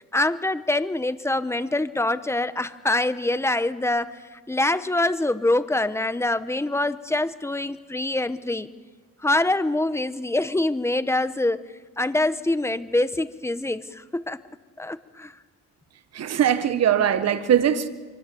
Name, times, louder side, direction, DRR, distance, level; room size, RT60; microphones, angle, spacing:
voice 1, 0.0-8.7 9.2-11.6 12.0-14.4 14.8-15.3, left 2 dB, 10° left, 1.1 m, -25 dB
voice 2, 16.1-17.9, right 9 dB, 55° right, 1.4 m, -21 dB
25.0 x 22.5 x 7.1 m
cardioid pair, 90°, 30 cm